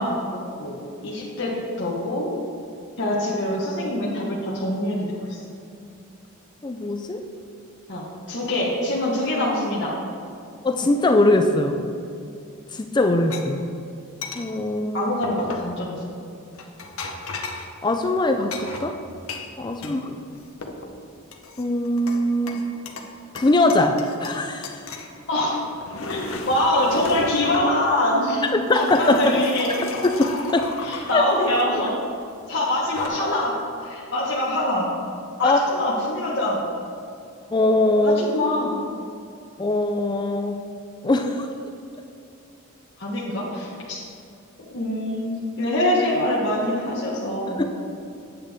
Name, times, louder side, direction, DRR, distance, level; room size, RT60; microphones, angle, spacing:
voice 1, 0.0-2.3 3.0-5.4 7.9-10.0 14.9-16.0 19.8-20.0 25.3-25.6 26.1-26.2 26.5-28.4 28.7-29.7 30.8-31.9 32.5-33.5 33.8-34.9 35.4-36.6 38.0-38.8 43.0-44.0 44.6-47.6, left 1 dB, 50° left, -6 dB, 1.2 m, -24 dB
voice 2, 6.6-7.2 10.6-11.8 12.7-13.6 14.4-15.1 17.8-19.0 19.6-20.2 21.6-22.6 23.3-24.7 28.4-29.4 30.0-30.7 31.1-31.2 35.4-35.6 37.5-38.2 39.6-40.7 41.0-41.5 47.5-47.8, left 2 dB, 20° left, 5 dB, 0.3 m, -21 dB
sound 1, 13.3-13.4 14.2-14.5 15.2-15.7 16.6-17.7 18.5-20.0 20.3-20.9 21.3-22.2 22.5-23.1 23.4-24.4 24.6-25.1 25.6-27.7 28.5-31.9 32.7-33.1, left 3 dB, 70° left, 0.8 m, -34 dB
8.8 x 8.2 x 3.5 m, 2.5 s
head